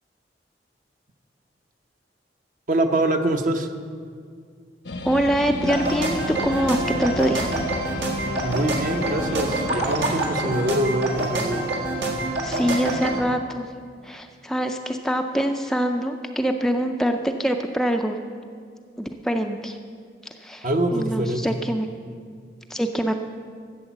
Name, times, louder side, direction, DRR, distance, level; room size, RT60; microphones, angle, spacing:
voice 1, 2.7-3.7 8.4-11.6 20.6-21.4, right 1 dB, 45° right, 5 dB, 0.9 m, -24 dB
sound 1, 4.8-10.2, left 2 dB, 90° left, 1.1 m, -33 dB
voice 2, 5.0-7.5 12.4-13.7 14.0-18.3 19.0-19.8 20.4-21.9 22.7-23.2, equal, 5° left, 4 dB, 0.4 m, -24 dB
sound 2, 5.6-13.2, right 2 dB, 75° right, 1.8 m, -27 dB
12.5 x 7.8 x 7.2 m, 2.1 s
head